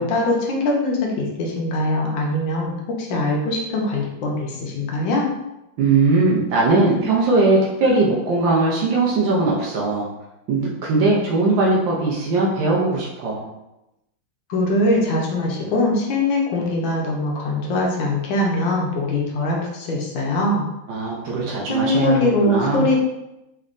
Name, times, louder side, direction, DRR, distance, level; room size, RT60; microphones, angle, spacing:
voice 1, 0.0-2.7 3.0-5.3 14.5-20.6 21.7-23.0, left 2 dB, 75° left, -2 dB, 1.6 m, -22 dB
voice 2, 5.8-10.1 10.5-13.5 20.9-22.9, right 3 dB, 70° right, -4 dB, 1.4 m, -19 dB
4.1 x 3.3 x 2.5 m, 0.91 s
omnidirectional pair, 2.2 m